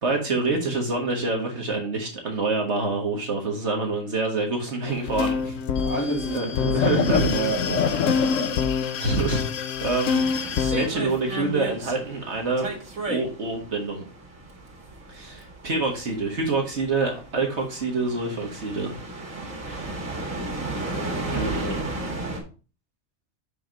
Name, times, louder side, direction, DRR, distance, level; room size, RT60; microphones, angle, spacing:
voice 1, 0.0-5.6 6.3-7.3 9.0-9.5 9.8-12.7 13.1-14.0 15.1-18.9 19.7-20.0 21.3-21.7, right 3 dB, 60° right, 2 dB, 1.7 m, -26 dB
sound 1, 4.9-10.9, left 6 dB, 75° left, 1.0 m, -25 dB
voice 2, 5.8-8.5 20.9-21.8, right 3 dB, 10° left, -4 dB, 2.5 m, -31 dB
sound 2, 10.1-22.4, right 2 dB, 90° right, 2.2 m, -34 dB
6.0 x 5.6 x 3.9 m, 0.35 s
omnidirectional pair, 1.3 m